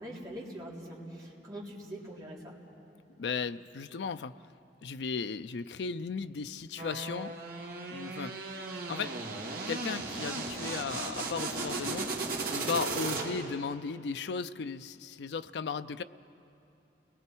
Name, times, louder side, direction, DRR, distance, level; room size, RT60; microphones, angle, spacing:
voice 1, 0.0-2.5, right 1 dB, 20° right, -6 dB, 3.6 m, -43 dB
voice 2, 3.2-4.3 4.8-7.3 7.9-8.3 8.9-9.2 9.7-12.1 12.5-16.0, left 5 dB, 80° left, 11 dB, 0.5 m, -36 dB
sound 1, 6.8-13.6, right 3 dB, 55° right, 2.0 m, -36 dB
30.0 x 20.5 x 4.6 m, 2.8 s
head